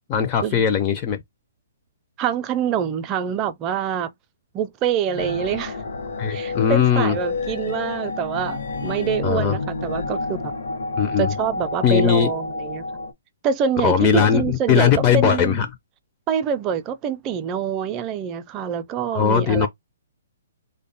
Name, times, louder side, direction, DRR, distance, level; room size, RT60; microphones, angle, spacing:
voice 1, 0.1-1.2 6.2-7.2 9.2-9.6 11.0-11.4 11.8-12.3 13.8-15.7 19.1-19.7, left 7 dB, 30° left, 0.5 m, -19 dB
voice 2, 2.2-4.1 4.5-5.8 6.3-10.5 11.2-12.8 13.4-15.6 16.3-19.7, right 7 dB, 25° right, 0.5 m, -25 dB
sound 1, 5.2-13.1, left 3 dB, 70° left, 0.8 m, -29 dB
3.2 x 2.2 x 4.0 m
hypercardioid pair, 135°, 0 cm